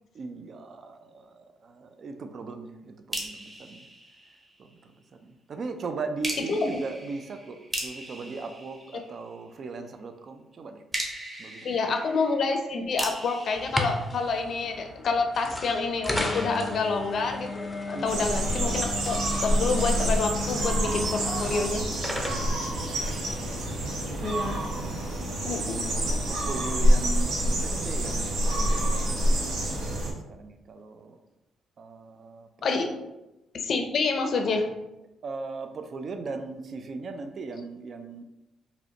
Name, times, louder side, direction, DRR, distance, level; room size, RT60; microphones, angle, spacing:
voice 1, 0.1-3.8 4.6-10.8 11.4-11.8 17.9-18.3 22.6-23.2 23.7-24.8 25.0-25.1 25.9-31.2 31.8-32.5 32.8-33.1 35.2-38.2, right 4 dB, 50° right, 7 dB, 0.4 m, -39 dB
sound 1, 3.1-4.8 6.2-9.6 10.9-14.8, right 1 dB, 20° right, 1.0 m, -38 dB
voice 2, 11.6-19.2 19.4-21.9 24.2-24.6 25.4-25.8 32.6-32.9 33.5-34.7, left 4 dB, 55° left, 4 dB, 0.5 m, -28 dB
sound 2, 13.5-23.9, left 2 dB, 5° left, 0.6 m, -35 dB
sound 3, 18.1-30.1, right 1 dB, 85° right, 0.9 m, -27 dB
5.0 x 2.1 x 2.8 m, 0.96 s
cardioid pair, 90°, 0 cm